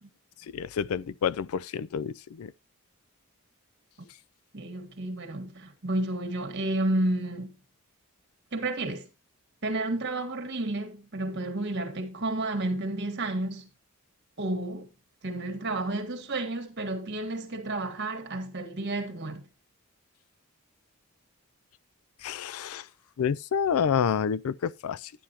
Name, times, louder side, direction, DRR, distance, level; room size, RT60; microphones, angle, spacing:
voice 1, 0.5-2.5 22.2-22.9 23.2-25.1, left 7 dB, 80° left, 0.4 m, -28 dB
voice 2, 4.5-7.5 8.5-9.1 9.6-13.7 14.4-14.9 15.2-19.4, right 2 dB, 50° right, 1.6 m, -31 dB
10.0 x 9.4 x 2.8 m
head